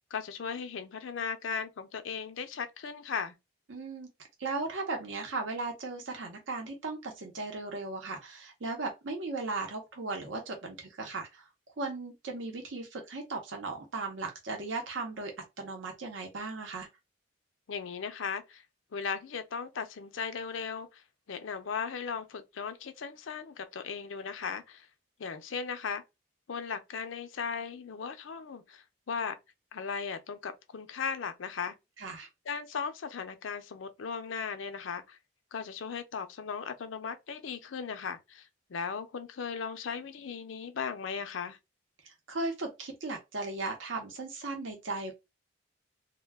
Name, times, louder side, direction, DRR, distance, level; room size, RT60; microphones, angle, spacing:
voice 1, 0.1-3.3 17.7-18.6 18.9-21.0 21.3-24.9 25.2-26.0 26.5-29.4 29.7-31.8 32.5-35.2 35.5-41.6, left 6 dB, 80° left, 0.5 m, -37 dB
voice 2, 3.7-4.1 4.4-11.5 11.8-16.9 32.0-32.3 42.0-45.1, right 3 dB, 75° right, 0.7 m, -37 dB
2.2 x 2.2 x 3.3 m
head